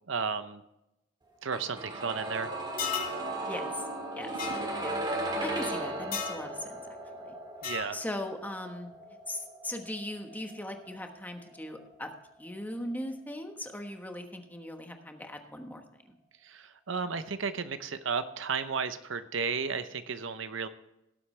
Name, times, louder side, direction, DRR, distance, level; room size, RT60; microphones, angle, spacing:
voice 1, 0.1-0.6 1.4-2.5 7.6-8.0 16.4-20.7, right 5 dB, 70° right, 11 dB, 0.7 m, -33 dB
sound 1, 1.5-13.4 13.6-13.7, right 1 dB, 20° right, 1.8 m, -37 dB
sound 2, 2.8-3.2 4.4-4.6 6.1-6.4 7.6-7.9, left 7 dB, 45° left, 2.9 m, -33 dB
voice 2, 3.5-3.9 4.1-4.3 4.8-4.9 5.4-6.8 7.2-7.3 7.9-8.9 9.3-12.1 12.4-16.1, left 1 dB, 10° left, 4 dB, 1.2 m, -39 dB
18.0 x 7.9 x 3.3 m, 0.88 s
head